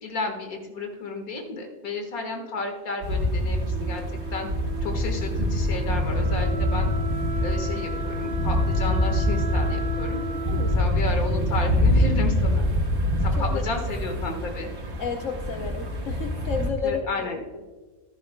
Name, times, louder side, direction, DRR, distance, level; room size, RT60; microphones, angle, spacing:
voice 1, 0.0-4.0 4.3-4.5 4.8-6.9 7.4-10.2 10.7-12.6 13.2-14.7 16.8-17.4, left 3 dB, 85° left, 4 dB, 2.0 m, -32 dB
sound 1, 3.0-16.7, equal, 85° right, 2.0 m, -25 dB
Wind instrument woodwind instrument, 3.6-12.4, left 1 dB, 35° right, 2.0 m, -36 dB
voice 2, 10.5-10.8 13.4-13.6 15.0-17.4, left 6 dB, 65° left, 4 dB, 1.1 m, -31 dB
14.5 x 11.5 x 2.2 m, 1.3 s
omnidirectional pair, 1.5 m